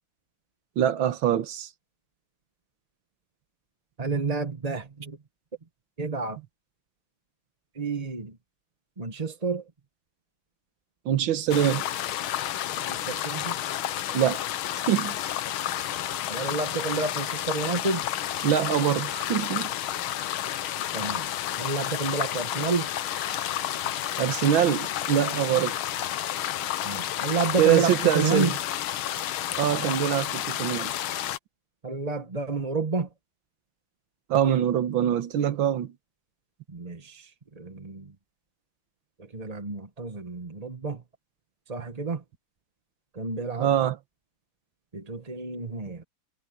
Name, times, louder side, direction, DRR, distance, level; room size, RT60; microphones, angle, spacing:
voice 1, 0.8-1.7 11.1-11.9 14.1-14.4 14.7-15.2 18.4-19.7 24.2-25.8 27.6-28.6 29.6-30.9 34.3-35.9 43.6-44.0, right 10 dB, 70° right, 1.8 m, -24 dB
voice 2, 4.0-5.2 6.0-6.4 7.8-8.3 9.0-9.6 12.8-13.5 16.3-18.0 20.9-21.3 21.6-22.9 26.8-28.5 31.8-33.1 36.7-37.3 37.6-38.1 39.3-41.0 41.7-42.2 43.1-43.7 44.9-46.0, right 4 dB, 25° right, 1.1 m, -30 dB
sound 1, 11.5-31.4, left 12 dB, 80° left, 1.7 m, -31 dB
omnidirectional pair, 2.3 m